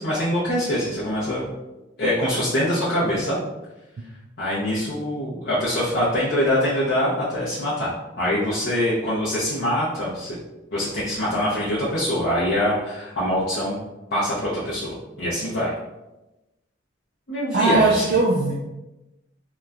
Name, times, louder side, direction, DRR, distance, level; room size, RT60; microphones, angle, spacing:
voice 1, 0.0-1.4 2.0-3.4 4.4-10.4 10.7-13.8 14.1-15.7 17.3-18.1, left 1 dB, 50° left, -9 dB, 0.6 m, -24 dB
voice 2, 17.5-18.5, right 3 dB, 50° right, -4 dB, 0.3 m, -19 dB
3.0 x 2.2 x 2.4 m, 1.0 s
head